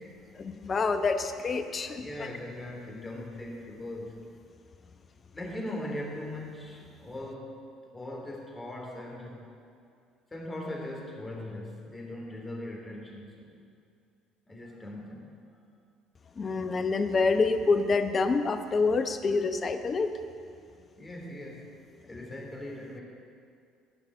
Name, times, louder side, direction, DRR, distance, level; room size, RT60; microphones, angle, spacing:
voice 1, 0.3-2.3 16.4-20.1, left 4 dB, 40° left, 8 dB, 0.9 m, -27 dB
voice 2, 1.9-4.2 5.3-7.6 7.9-9.5 10.3-13.6 14.5-15.3 21.0-21.8 22.0-23.0, left 1 dB, 20° left, -1 dB, 3.4 m, -40 dB
14.5 x 5.9 x 8.0 m, 2.4 s
hypercardioid pair, 65°, 0 cm